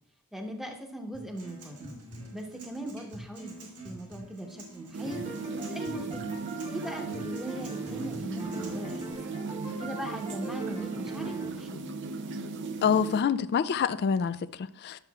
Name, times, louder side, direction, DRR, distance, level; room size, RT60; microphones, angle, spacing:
voice 1, 0.3-1.9 2.3-5.2 5.5-6.2 6.7-9.4 9.8-11.8, right 1 dB, ahead, 0.9 m, -39 dB
Acoustic guitar, 1.1-9.1, right 2 dB, 80° right, 3.3 m, -46 dB
sound 1, 4.9-13.2, right 4 dB, 55° right, 0.5 m, -37 dB
sound 2, 5.0-11.5, right 2 dB, 25° right, 1.1 m, -42 dB
voice 2, 12.8-15.0, left 6 dB, 45° left, 0.3 m, -26 dB
11.0 x 6.8 x 2.4 m
head